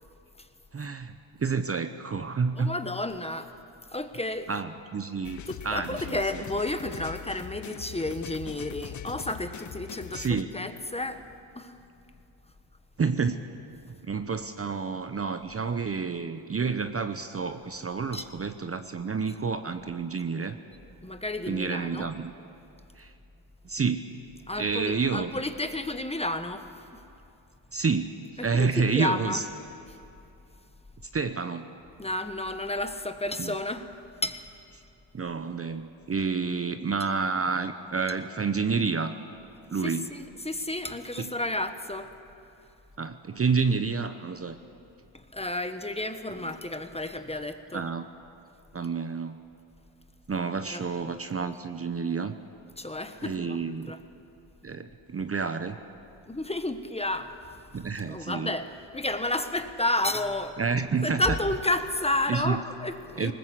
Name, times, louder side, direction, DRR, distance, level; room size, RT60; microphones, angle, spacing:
voice 1, 0.7-2.8 4.5-6.4 10.1-10.5 13.0-13.4 13.9-20.6 21.5-22.3 23.0-23.1 23.6-24.0 24.6-25.3 27.7-28.1 28.3-29.4 31.1-31.7 33.4-33.5 35.1-39.1 39.7-40.1 41.2-41.3 43.0-44.6 46.4-46.5 47.7-48.0 48.7-49.4 50.3-52.4 53.2-53.9 54.6-55.8 57.7-58.5 60.6-61.2 62.3-62.6 63.2-63.3, right 5 dB, 30° right, 9 dB, 0.9 m, -29 dB
voice 2, 2.6-3.5 3.9-4.5 5.5-11.2 11.5-11.8 18.1-18.3 21.0-22.1 24.5-26.7 26.9-27.0 28.4-29.4 32.0-33.9 34.2-34.4 39.8-42.1 45.1-47.8 50.7-50.8 52.8-53.6 53.9-54.0 56.3-57.3 58.1-60.6 61.0-63.3, left 1 dB, 10° left, 8 dB, 1.2 m, -31 dB
sound 1, 5.2-10.4, left 10 dB, 35° left, 0.6 m, -41 dB
20.0 x 19.5 x 8.2 m, 2.7 s
cardioid pair, 85°, 50 cm